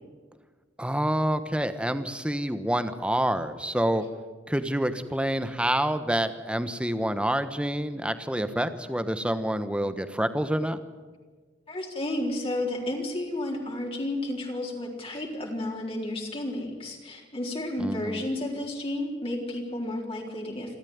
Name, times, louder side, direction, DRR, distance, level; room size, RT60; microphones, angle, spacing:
voice 1, 0.8-4.0 4.5-10.8 17.8-18.2, right 1 dB, 5° right, 10 dB, 1.2 m, -27 dB
voice 2, 11.7-20.8, left 1 dB, 30° left, 0 dB, 4.0 m, -32 dB
27.5 x 13.0 x 9.6 m, 1.4 s
head